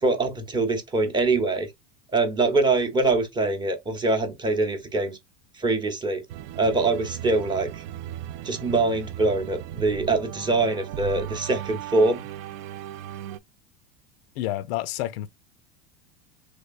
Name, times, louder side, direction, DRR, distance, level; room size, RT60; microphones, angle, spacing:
voice 1, 0.0-1.7 2.1-5.2 5.6-6.2 6.6-7.8 8.4-12.2, right 3 dB, 15° right, 0.7 m, -24 dB
sound 1, 6.3-13.4, right 12 dB, 60° right, 0.4 m, -37 dB
voice 2, 14.4-15.3, left 14 dB, 75° left, 0.5 m, -29 dB
3.5 x 3.3 x 2.3 m
supercardioid pair, 140°, 30 cm